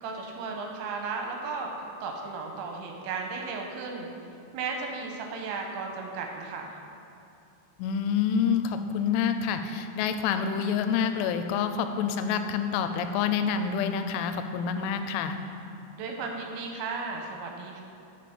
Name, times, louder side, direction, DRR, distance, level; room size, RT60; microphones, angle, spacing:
voice 1, 0.0-1.7 2.0-4.1 4.5-6.7 16.0-17.8, right 4 dB, 85° right, 2 dB, 2.9 m, -35 dB
voice 2, 7.8-15.4, left 7 dB, 90° left, 8 dB, 3.1 m, -27 dB
8.5 x 5.9 x 5.1 m, 2.7 s
omnidirectional pair, 5.5 m